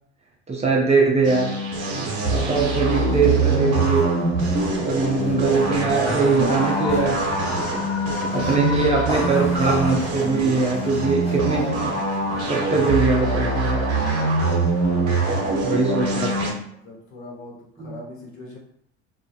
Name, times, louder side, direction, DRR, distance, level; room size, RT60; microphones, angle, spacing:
voice 1, 0.5-1.5 1.9-4.1 4.8-7.2 8.3-12.0 12.5-13.9 15.6-16.3 17.8-18.0, right 4 dB, 20° right, -2 dB, 0.5 m, -22 dB
sound 1, 1.2-16.5, right 2 dB, 50° right, 0.9 m, -24 dB
sound 2, 3.0-12.9, left 1 dB, 20° left, 1.5 m, -36 dB
Screaming, 6.4-10.0, left 4 dB, 85° left, 0.6 m, -32 dB
voice 2, 15.0-16.0 16.2-16.3 16.7-18.6, left 2 dB, 55° left, -2 dB, 1.0 m, -39 dB
2.3 x 2.0 x 2.8 m, 0.70 s
hypercardioid pair, 80°, 34 cm